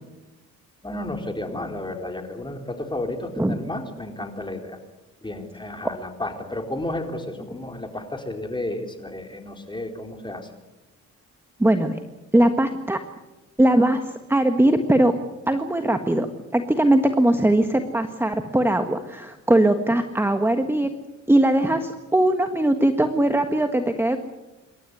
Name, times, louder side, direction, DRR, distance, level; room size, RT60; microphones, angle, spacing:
voice 1, 0.8-4.8 5.2-10.5, left 1 dB, 15° left, 4 dB, 4.2 m, -32 dB
voice 2, 11.6-12.0 12.3-13.0 13.6-14.0 14.3-15.1 15.5-16.3 16.5-20.9 21.3-24.2, right 1 dB, 10° right, 6 dB, 1.6 m, -20 dB
27.0 x 13.0 x 9.5 m, 1.1 s
cardioid pair, 90°, 30 cm